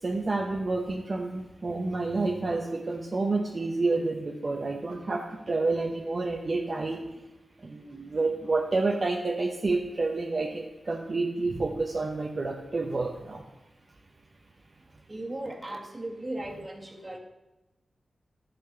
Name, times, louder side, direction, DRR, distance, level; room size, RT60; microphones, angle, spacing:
voice 1, 0.0-7.0 7.6-13.4, right 3 dB, 45° right, 1 dB, 0.8 m, -29 dB
voice 2, 15.1-17.2, right 1 dB, 30° right, 2 dB, 1.6 m, -37 dB
12.0 x 4.3 x 6.7 m, 1.0 s
cardioid pair, 60°, 0 cm